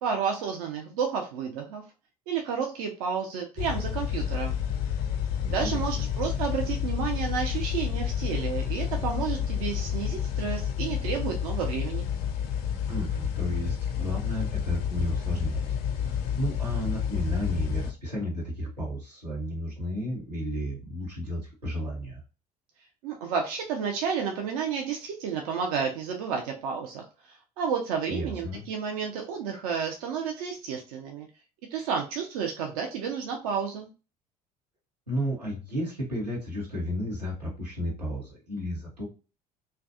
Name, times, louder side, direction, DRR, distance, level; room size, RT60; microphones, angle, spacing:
voice 1, 0.0-1.8 2.3-4.5 5.5-12.1 23.0-31.3 31.7-33.9, right 6 dB, 65° right, 3 dB, 0.4 m, -31 dB
sound 1, 3.6-17.9, left 8 dB, 50° left, 0.5 m, -30 dB
voice 2, 5.4-6.1 12.9-22.2 28.1-28.6 35.1-39.0, equal, 90° right, -3 dB, 0.8 m, -33 dB
2.5 x 2.2 x 2.3 m, 0.33 s
figure-of-eight pair, 60°, 20 cm